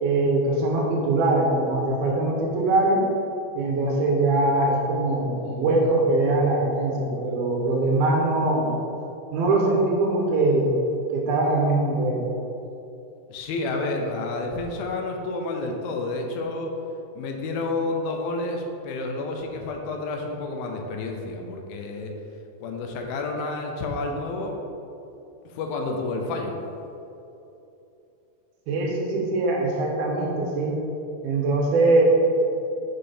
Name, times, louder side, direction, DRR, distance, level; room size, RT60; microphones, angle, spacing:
voice 1, 0.0-3.0 3.5-8.7 9.3-10.7 11.1-12.2 28.7-30.8 31.2-32.0, right 2 dB, 80° right, 0 dB, 2.9 m, -22 dB
voice 2, 13.3-16.7 17.2-22.1 22.6-24.6 25.5-26.6, left 2 dB, 80° left, 2 dB, 2.5 m, -30 dB
6.7 x 4.4 x 4.9 m, 2.9 s
omnidirectional pair, 4.3 m